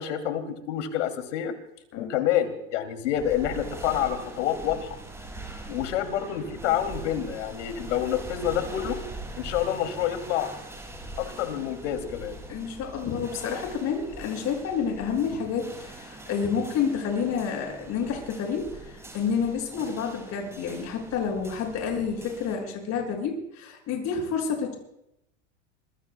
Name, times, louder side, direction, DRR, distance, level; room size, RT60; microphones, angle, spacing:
voice 1, 0.0-1.5 2.0-4.9 5.7-9.0 9.4-10.5 11.2-12.4, left 10 dB, 75° left, 7 dB, 3.0 m, -28 dB
sound 1, 3.1-22.6, right 2 dB, 5° right, 5.9 m, -42 dB
voice 2, 12.5-24.7, left 6 dB, 45° left, 2 dB, 6.9 m, -29 dB
26.0 x 22.5 x 2.3 m, 0.83 s
hypercardioid pair, 110°, 37 cm